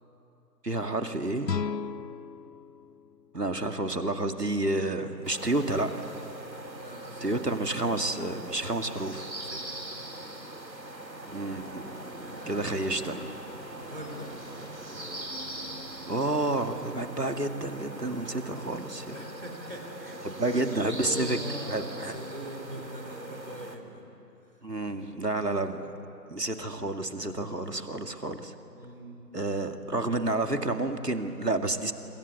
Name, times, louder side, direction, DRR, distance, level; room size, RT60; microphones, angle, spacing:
voice 1, 0.6-1.5 3.3-6.1 7.2-9.2 11.3-11.8 12.5-13.3 16.1-19.2 20.4-21.4 21.7-22.2 24.6-25.9 26.3-28.5 29.3-31.9, right 2 dB, 70° right, 6 dB, 2.3 m, -30 dB
sound 1, 1.4-4.5, left 6 dB, 75° left, 0.7 m, -37 dB
sound 2, 5.2-23.8, right 1 dB, 85° right, 3.2 m, -42 dB
voice 2, 6.7-7.4 8.6-8.8 9.4-10.2 12.2-12.8 13.8-14.3 19.1-24.1 24.5-24.6 28.7-29.2, equal, 30° right, 2 dB, 3.4 m, -42 dB
sound 3, 11.2-16.3, right 1 dB, 55° right, 5.2 m, -46 dB
27.0 x 26.0 x 8.2 m, 2.9 s
figure-of-eight pair, 180°, 50 cm